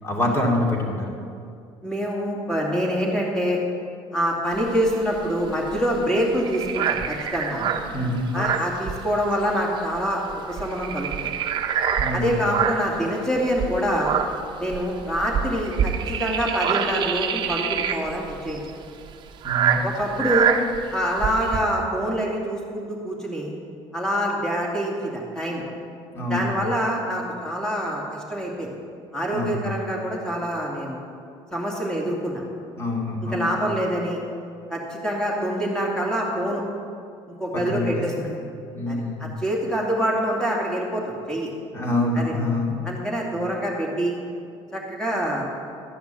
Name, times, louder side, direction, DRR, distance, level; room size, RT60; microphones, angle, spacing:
voice 1, 0.0-1.1 7.6-7.7 7.9-8.3 12.0-12.4 19.4-19.8 26.1-26.5 29.3-29.7 32.8-33.6 37.5-37.9 38.1-38.3 38.7-39.3 41.7-42.8, left 1 dB, 25° left, -1 dB, 2.5 m, -26 dB
voice 2, 1.8-3.6 4.1-7.7 8.3-11.3 12.1-14.1 14.6-18.6 19.8-20.5 20.9-23.5 23.9-25.6 26.3-28.7 29.1-31.0 31.5-32.4 33.3-34.2 34.7-36.6 37.4-38.1 38.9-41.5 42.1-42.3 42.9-44.1 44.7-45.4, equal, 5° left, -3 dB, 2.5 m, -25 dB
sound 1, 4.5-9.5 9.8-10.0 10.3-13.0 13.5-21.6, right 8 dB, 45° right, 0.9 m, -26 dB
13.5 x 5.8 x 8.7 m, 2.4 s
cardioid pair, 130°, 11 cm